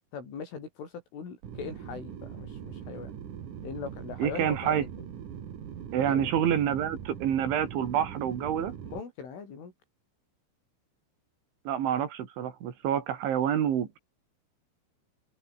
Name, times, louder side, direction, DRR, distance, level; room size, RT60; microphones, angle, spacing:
voice 1, 0.1-3.2 3.6-5.1 6.0-6.5 8.8-9.7, left 6 dB, 85° left, 8.6 m, -41 dB
sound 1, 1.4-9.0, right 8 dB, 50° right, 3.2 m, -41 dB
voice 2, 4.2-4.8 5.9-8.7 11.7-14.0, right 9 dB, 75° right, 5.2 m, -27 dB
open air
omnidirectional pair, 5.5 m